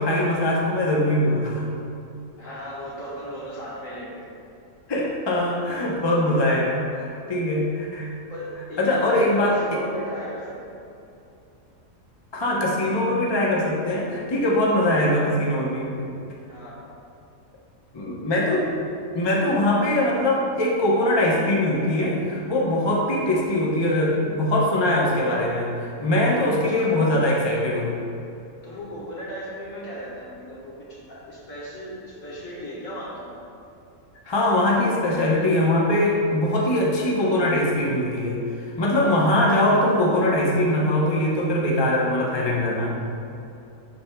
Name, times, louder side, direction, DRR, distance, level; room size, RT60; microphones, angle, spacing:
voice 1, 0.0-1.6 4.9-8.1 8.8-9.5 12.3-16.1 17.9-18.9 19.1-28.0 34.3-43.0, left 1 dB, 25° left, -4 dB, 0.6 m, -22 dB
voice 2, 2.4-4.2 8.3-10.8 16.5-16.9 26.7-27.0 28.6-33.3, equal, 65° left, -6 dB, 1.7 m, -36 dB
11.0 x 4.2 x 2.2 m, 2.7 s
omnidirectional pair, 1.5 m